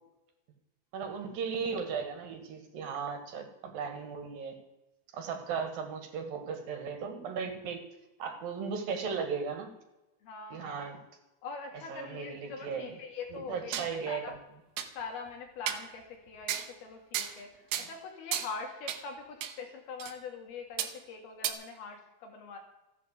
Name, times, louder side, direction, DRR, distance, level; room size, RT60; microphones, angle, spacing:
voice 1, 0.9-4.6 5.1-7.8 8.2-9.7 10.5-11.0 11.9-13.0 13.3-14.2 17.7-17.9, right 6 dB, 70° right, 5 dB, 3.5 m, -36 dB
voice 2, 10.2-10.9 11.4-14.3 15.0-22.6, left 5 dB, 80° left, 2 dB, 4.3 m, -43 dB
sound 1, 13.3-13.9 14.3-14.4 14.8-14.9 15.7-15.9 16.5-16.7 17.1-17.4 17.7-17.9 18.3-18.5 18.9-19.0 19.4-19.6 20.0-20.1 20.8-20.9 21.4-21.5, right 10 dB, 85° right, 3.0 m, -34 dB
14.5 x 8.4 x 8.1 m, 0.99 s
omnidirectional pair, 4.4 m